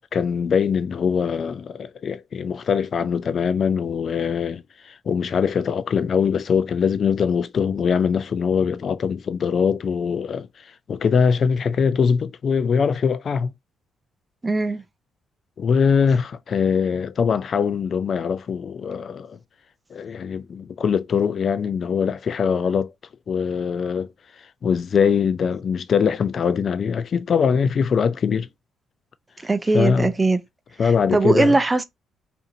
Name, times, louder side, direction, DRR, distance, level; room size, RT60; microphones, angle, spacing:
voice 1, 0.1-10.5 10.9-13.5 15.6-19.4 19.9-22.9 23.3-24.1 24.6-28.5 29.7-30.1 30.8-31.5, left 6 dB, 50° left, 0.3 m, -22 dB
voice 2, 14.4-14.8 29.4-30.4 30.8-31.8, right 2 dB, 20° right, 0.4 m, -20 dB
2.6 x 2.5 x 2.7 m
cardioid pair, 90°, 0 cm